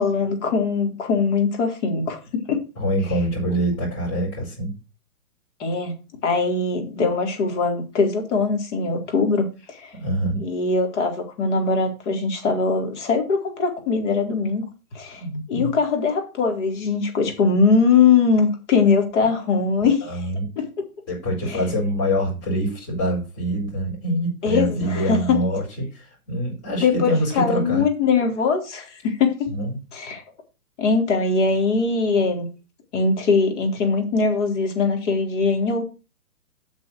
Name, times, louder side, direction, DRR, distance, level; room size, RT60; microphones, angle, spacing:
voice 1, 0.0-2.6 5.6-5.9 6.2-9.9 10.4-14.6 14.9-15.2 15.5-20.2 20.6-20.7 21.5-21.6 24.4-25.4 26.8-27.1 27.3-29.5 29.9-30.2 30.8-32.5 32.9-35.9, left 4 dB, 50° left, 3 dB, 4.1 m, -21 dB
voice 2, 2.8-4.7 10.0-10.4 15.2-15.7 20.0-20.5 21.1-27.8 29.5-29.8, equal, 25° left, -5 dB, 5.9 m, -25 dB
8.7 x 6.1 x 6.5 m, 0.31 s
hypercardioid pair, 140°, 44 cm